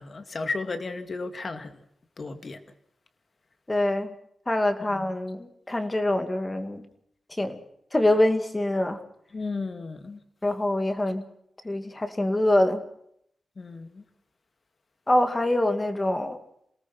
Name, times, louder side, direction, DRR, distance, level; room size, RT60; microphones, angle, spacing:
voice 1, 0.0-1.7 2.2-2.6 4.8-5.1 9.3-10.2 13.6-14.0, left 3 dB, 40° left, 2.4 m, -34 dB
voice 2, 3.7-4.1 4.5-6.8 7.4-7.6 7.9-9.0 10.4-11.3 11.6-12.8 15.1-16.4, left 1 dB, 20° left, 2.5 m, -24 dB
28.0 x 18.5 x 6.1 m
wide cardioid pair, 120°, 0 cm